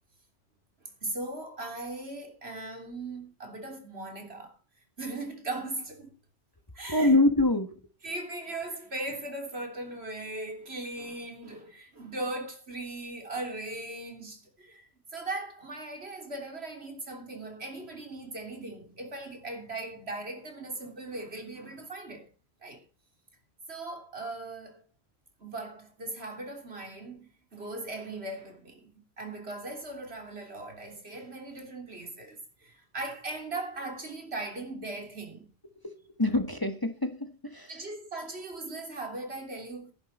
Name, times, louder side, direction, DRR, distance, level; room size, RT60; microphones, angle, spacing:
voice 1, 1.0-4.6 5.0-6.1 6.8-7.2 8.0-22.3 22.6-22.8 23.7-24.8 25.4-35.5 37.7-39.9, right 2 dB, 75° right, 3.6 m, -39 dB
voice 2, 6.9-7.8 35.8-35.9 36.2-37.7, left 2 dB, 20° left, 1.3 m, -25 dB
14.5 x 11.0 x 4.2 m
omnidirectional pair, 1.1 m